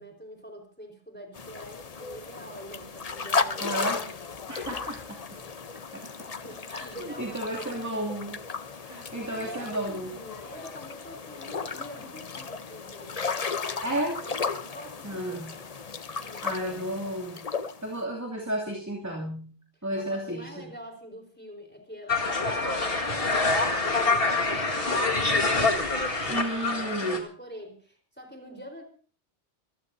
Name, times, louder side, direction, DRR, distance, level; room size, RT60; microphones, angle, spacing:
voice 1, 0.0-4.1 5.3-5.8 6.4-8.3 9.3-13.5 14.2-15.7 16.2-16.8 19.9-25.8 26.2-28.8, equal, 10° left, 3 dB, 4.2 m, -45 dB
sound 1, 1.3-18.0, left 5 dB, 35° left, 0.8 m, -35 dB
voice 2, 3.6-4.0 4.5-5.4 5.9-6.1 6.7-6.9 7.2-8.4 8.8-10.1 13.8-14.2 15.0-15.5 16.4-17.4 17.8-19.5 19.8-20.7 26.3-27.2, right 1 dB, 15° right, 0 dB, 2.7 m, -32 dB
sound 2, 22.1-27.2, left 3 dB, 55° left, 2.2 m, -25 dB
25.5 x 16.0 x 2.7 m, 0.41 s
omnidirectional pair, 1.2 m